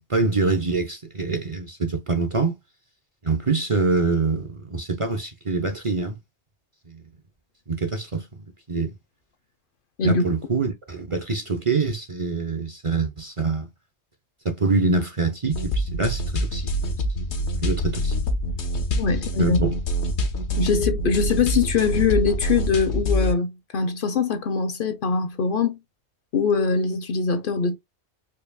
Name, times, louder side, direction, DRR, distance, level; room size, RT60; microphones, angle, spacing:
voice 1, 0.0-2.5 3.2-6.2 6.9-7.0 7.7-8.9 10.0-13.7 14.4-16.9 17.3-18.1 19.4-19.7, right 3 dB, 35° right, 0.6 m, -25 dB
sound 1, 15.5-23.3, equal, 85° left, 1.1 m, -25 dB
voice 2, 19.0-19.6 20.6-25.8 26.3-27.8, left 5 dB, 60° left, 0.7 m, -22 dB
4.6 x 2.8 x 2.2 m
omnidirectional pair, 1.1 m